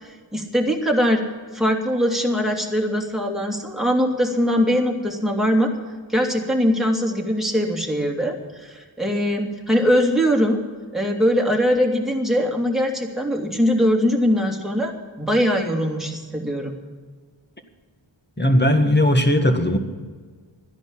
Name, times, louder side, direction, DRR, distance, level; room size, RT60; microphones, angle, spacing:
voice 1, 0.3-1.2 1.5-5.7 6.1-10.6 10.9-14.9 15.2-16.8, equal, ahead, 0 dB, 2.7 m, -21 dB
voice 2, 18.4-19.8, left 1 dB, 20° left, 6 dB, 1.7 m, -17 dB
13.0 x 10.5 x 8.8 m, 1.5 s
wide cardioid pair, 60°, 47 cm